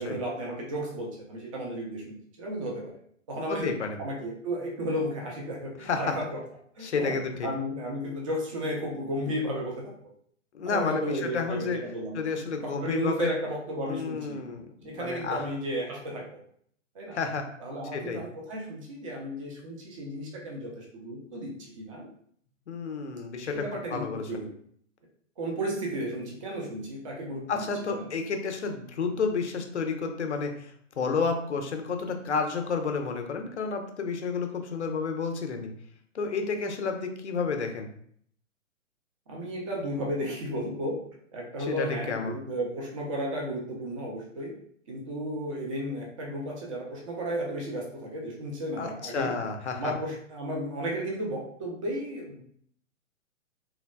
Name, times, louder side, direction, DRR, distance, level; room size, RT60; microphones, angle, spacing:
voice 1, 0.0-2.9 3.3-3.7 4.0-6.4 6.8-7.2 7.4-9.7 10.7-12.2 12.6-14.4 14.8-16.4 16.9-17.2 17.6-22.1 23.5-24.5 25.4-28.1 39.3-41.0 41.3-44.6 44.9-49.3 49.8-52.4, right 1 dB, 25° right, -2 dB, 0.4 m, -33 dB
voice 2, 3.5-4.0 5.8-6.1 6.8-7.5 10.5-11.8 12.1-13.3 13.9-15.5 17.1-17.5 17.9-18.2 22.7-24.2 27.5-35.7 36.1-37.9 41.7-42.4 48.8-49.9, left 5 dB, 60° left, 5 dB, 0.6 m, -31 dB
3.3 x 2.2 x 2.2 m, 0.64 s
figure-of-eight pair, 120°, 38 cm